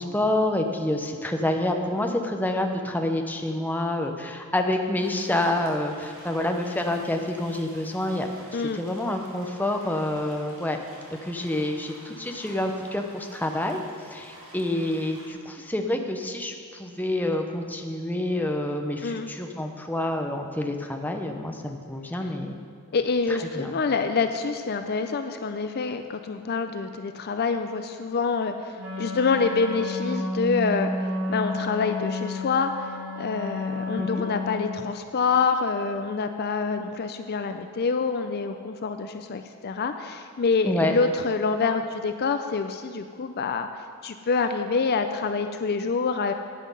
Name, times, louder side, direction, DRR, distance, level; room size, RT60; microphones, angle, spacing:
voice 1, 0.0-8.3 8.7-10.8 11.2-22.6 23.5-23.7 34.0-34.2 40.7-40.9, left 1 dB, 10° left, 4 dB, 0.7 m, -28 dB
sound 1, 5.0-15.3, right 1 dB, 60° right, 2.4 m, -49 dB
voice 2, 22.9-46.3, left 4 dB, 45° left, 8 dB, 0.4 m, -26 dB
Wind instrument woodwind instrument, 28.8-34.9, left 2 dB, 80° right, 3.0 m, -31 dB
10.0 x 9.3 x 5.5 m, 2.3 s
head